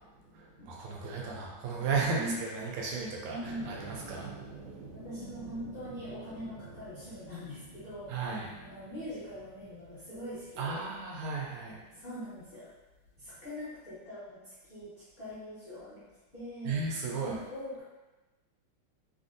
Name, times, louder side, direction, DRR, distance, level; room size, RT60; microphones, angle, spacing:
voice 1, 0.3-4.3 4.8-4.9 8.1-8.5 10.6-11.8 16.6-17.4, right 4 dB, 85° right, -2 dB, 1.5 m, -34 dB
voice 2, 3.3-3.7 4.9-10.9 11.9-12.7 13.2-16.0 16.3-16.8 17.2-17.8, equal, 40° left, -13 dB, 0.8 m, -42 dB
sound 1, 3.4-11.0, right 4 dB, 60° right, 1.1 m, -49 dB
3.3 x 2.5 x 2.5 m, 1.1 s
omnidirectional pair, 2.4 m